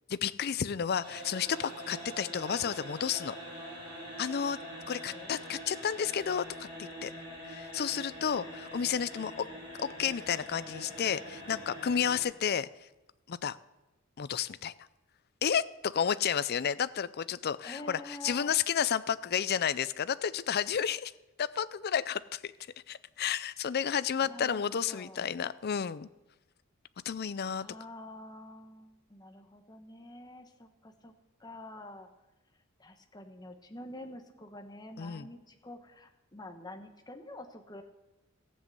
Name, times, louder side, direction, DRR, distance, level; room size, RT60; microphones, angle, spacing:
voice 1, 0.1-3.3 4.2-4.6 4.9-7.1 7.5-9.5 9.8-12.7 13.3-13.6 14.2-14.7 15.4-21.1 21.4-22.5 22.9-26.1 27.1-27.6 35.0-35.3, left 8 dB, 50° left, 16 dB, 0.4 m, -31 dB
sound 1, 1.0-12.2, equal, 25° right, 4.9 m, -44 dB
voice 2, 4.9-5.4 9.3-9.6 17.6-18.5 24.2-25.3 27.5-31.1 31.4-32.1 32.8-37.8, left 1 dB, 20° left, 5 dB, 1.1 m, -47 dB
14.5 x 7.6 x 7.9 m, 1.0 s
head